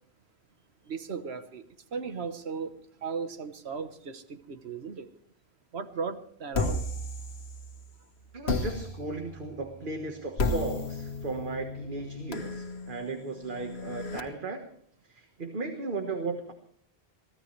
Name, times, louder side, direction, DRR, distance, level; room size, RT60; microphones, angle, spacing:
voice 1, 0.9-1.6 1.9-5.1 5.7-6.8, right 5 dB, 85° right, 1.4 m, -36 dB
sound 1, 6.5-7.9 8.5-14.2, left 2 dB, 80° left, 1.6 m, -34 dB
voice 2, 8.3-14.6 15.0-16.5, right 3 dB, 55° right, 1.6 m, -36 dB
23.5 x 15.5 x 3.3 m
omnidirectional pair, 1.1 m